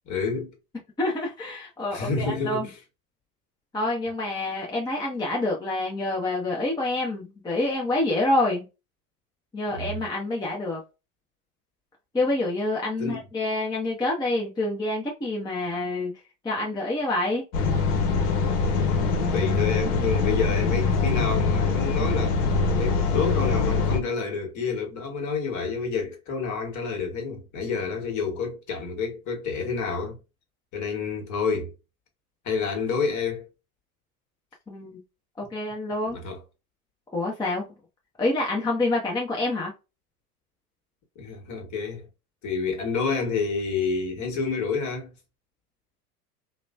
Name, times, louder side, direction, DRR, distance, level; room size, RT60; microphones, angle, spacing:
voice 1, 0.1-0.5 1.9-2.7 9.7-9.9 13.0-13.2 19.3-22.4 22.7-30.2 30.7-31.7 32.4-33.5 36.1-36.4 41.1-42.1 42.4-45.1, left 5 dB, 40° left, 1.3 m, -29 dB
voice 2, 1.0-2.7 3.7-8.7 9.5-10.8 12.1-16.1 16.4-17.4 34.7-35.0 35.4-36.2 37.1-37.7 38.2-39.7, left 2 dB, 10° left, 0.6 m, -27 dB
sound 1, 17.5-24.0, left 4 dB, 75° left, 0.8 m, -23 dB
3.0 x 2.1 x 2.4 m
hypercardioid pair, 90°, 46 cm